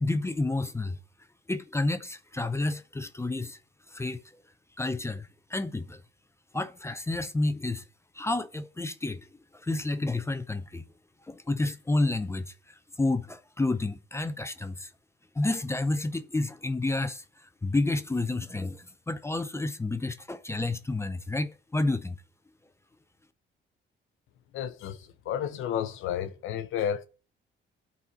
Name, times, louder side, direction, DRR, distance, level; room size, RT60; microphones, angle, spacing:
voice 1, 0.0-1.0 1.5-3.6 3.9-4.2 4.8-6.0 6.5-7.8 8.1-9.3 9.5-10.8 11.3-14.9 15.4-22.2, left 2 dB, 15° left, 0.5 m, -30 dB
voice 2, 24.5-27.1, left 9 dB, 85° left, 0.7 m, -32 dB
8.7 x 4.2 x 5.1 m
cardioid pair, 90°, 20 cm